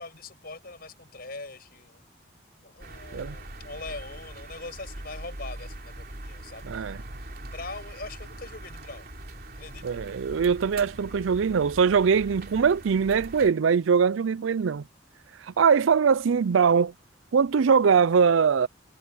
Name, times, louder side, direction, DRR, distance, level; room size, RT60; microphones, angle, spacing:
voice 1, 0.0-2.0 2.6-7.0 7.4-9.1 9.6-10.0, left 3 dB, 50° left, 6.0 m, -42 dB
sound 1, 2.8-13.5, right 1 dB, 50° right, 3.5 m, -42 dB
voice 2, 6.6-7.0 9.8-14.8 15.4-16.9 17.3-18.7, right 6 dB, 80° right, 0.4 m, -22 dB
head